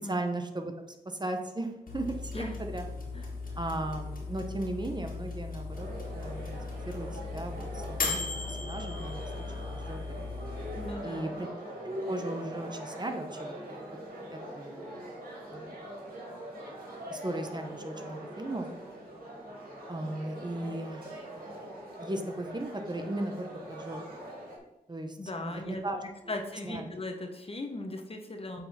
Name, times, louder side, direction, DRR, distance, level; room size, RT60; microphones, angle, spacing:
voice 1, 0.0-2.9 3.6-5.9 6.1-6.6 6.9-9.3 9.7-10.2 11.0-11.5 11.8-13.5 13.9-14.0 14.3-15.1 15.5-15.8 17.1-18.7 19.9-21.2 21.9-24.3 24.9-25.2 25.4-26.3 26.6-26.9 28.6-28.7, right 1 dB, 30° right, 5 dB, 1.0 m, -37 dB
sound 1, 1.9-10.9, left 3 dB, 65° left, 1.9 m, -37 dB
sound 2, 5.7-24.6, right 1 dB, 70° right, 2.2 m, -43 dB
voice 2, 10.8-11.4 25.2-25.8 26.3-28.7, left 2 dB, 40° left, 4 dB, 1.1 m, -38 dB
8.5 x 4.1 x 4.3 m, 0.93 s
cardioid pair, 50°, 15 cm